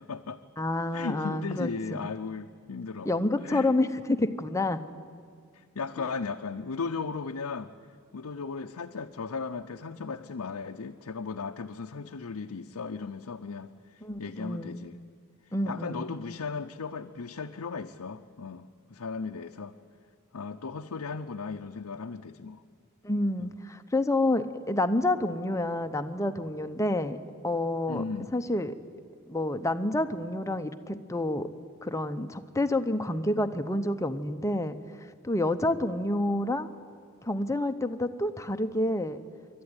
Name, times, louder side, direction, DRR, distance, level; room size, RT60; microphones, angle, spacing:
voice 1, 0.0-0.4 0.9-3.1 3.4-3.7 5.5-7.7 8.1-15.0 15.7-19.7 20.3-22.6 23.4-23.5 27.9-28.3, left 4 dB, 85° left, 4 dB, 0.6 m, -36 dB
voice 2, 0.6-2.1 3.0-4.8 14.0-14.8 15.5-16.2 23.0-27.2 27.4-28.0 28.3-28.7 29.3-31.5 31.8-34.8 35.2-36.7 37.2-39.2, left 1 dB, 15° left, 8 dB, 0.8 m, -28 dB
26.5 x 12.0 x 9.7 m, 2.1 s
head